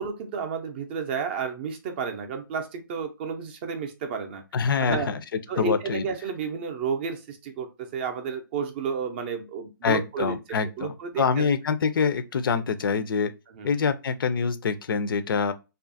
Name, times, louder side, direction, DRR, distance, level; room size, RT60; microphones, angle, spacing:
voice 1, 0.0-4.4 4.8-5.1 5.5-10.4 10.8-11.5 13.5-13.7, right 6 dB, 30° right, 0.4 m, -31 dB
voice 2, 4.5-5.2 5.6-6.0 9.8-13.3 13.6-15.5, left 5 dB, 70° left, 0.4 m, -25 dB
2.7 x 2.4 x 2.5 m
hypercardioid pair, 155°, 12 cm